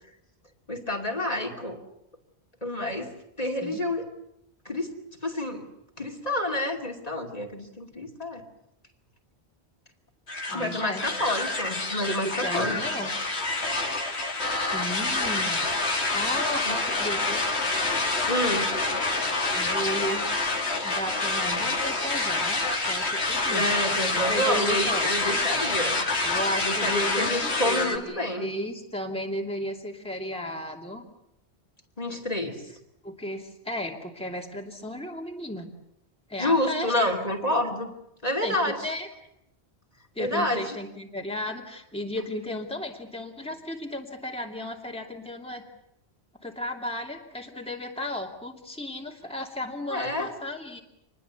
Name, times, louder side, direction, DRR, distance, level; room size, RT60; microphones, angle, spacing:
voice 1, 0.7-1.8 2.6-3.1 3.4-4.1 4.6-5.0 5.2-5.6 6.0-8.4 10.5-12.8 16.6-16.8 18.3-18.7 23.5-26.0 26.6-28.5 32.0-32.6 36.4-37.9 38.2-38.9 40.2-40.8 49.9-50.3, left 1 dB, 35° left, 3 dB, 2.9 m, -28 dB
sound 1, 10.3-28.0, left 3 dB, 75° left, 2.8 m, -27 dB
voice 2, 10.5-11.0 11.9-13.1 14.5-15.7 16.1-17.4 19.5-20.2 20.8-23.7 24.1-25.4 26.2-31.0 33.0-35.7 36.3-37.1 38.4-39.1 40.1-45.6 46.4-50.8, left 1 dB, 5° left, 1 dB, 2.7 m, -34 dB
26.5 x 21.0 x 8.3 m, 0.79 s
omnidirectional pair, 1.1 m